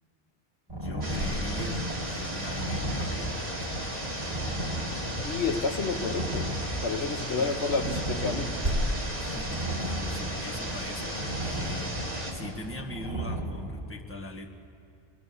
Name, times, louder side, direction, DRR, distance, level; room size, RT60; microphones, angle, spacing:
voice 1, 0.7-3.3 7.1-7.6 9.2-12.0 12.3-14.5, left 2 dB, 10° left, -2 dB, 1.9 m, -42 dB
sound 1, 0.7-13.4, right 1 dB, 25° right, 4.3 m, -35 dB
sound 2, 1.0-12.3, right 1 dB, 50° right, 3.5 m, -36 dB
Cricket, 1.1-12.5, equal, 75° right, 5.2 m, -39 dB
voice 2, 5.2-6.5 6.8-8.5, left 4 dB, 80° left, 6 dB, 1.2 m, -30 dB
25.5 x 22.5 x 7.0 m, 2.5 s
omnidirectional pair, 1.1 m